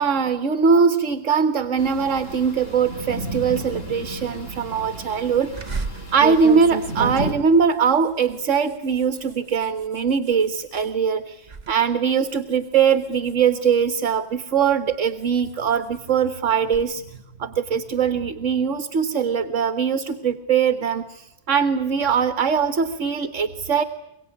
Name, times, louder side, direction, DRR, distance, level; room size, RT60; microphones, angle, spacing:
voice 1, 0.0-5.5 6.1-23.8, right 6 dB, 75° right, 11 dB, 1.6 m, -21 dB
sound 1, 1.8-7.3, right 1 dB, 90° left, 7.3 m, -33 dB
sound 2, 5.6-10.9 11.3-11.7 12.1-14.1 14.7-16.9, right 5 dB, 35° right, 1.3 m, -34 dB
24.0 x 24.0 x 9.9 m, 0.87 s
omnidirectional pair, 1.3 m